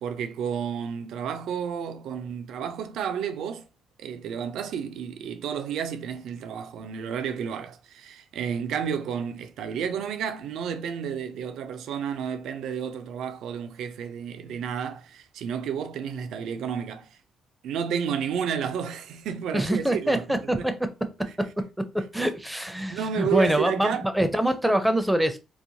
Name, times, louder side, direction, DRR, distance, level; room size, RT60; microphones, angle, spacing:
voice 1, 0.0-3.7 4.0-17.1 17.6-20.6 22.9-24.1, right 7 dB, 80° right, 0.4 m, -31 dB
voice 2, 19.5-20.7 21.9-25.4, right 1 dB, 5° right, 0.5 m, -24 dB
3.0 x 2.1 x 2.7 m
cardioid pair, 90°, 0 cm